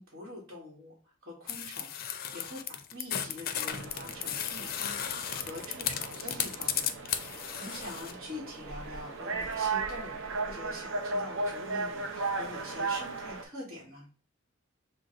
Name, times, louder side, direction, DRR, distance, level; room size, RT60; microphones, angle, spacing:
voice 1, 0.0-10.2 10.4-14.1, left 1 dB, 45° right, -7 dB, 1.4 m, -45 dB
sound 1, 1.5-8.1, left 9 dB, 45° left, 0.4 m, -35 dB
sound 2, 3.7-13.4, right 3 dB, 60° right, 0.8 m, -36 dB
Bird, 4.7-10.6, left 2 dB, 25° right, 2.5 m, -57 dB
6.2 x 2.2 x 3.8 m, 0.39 s
head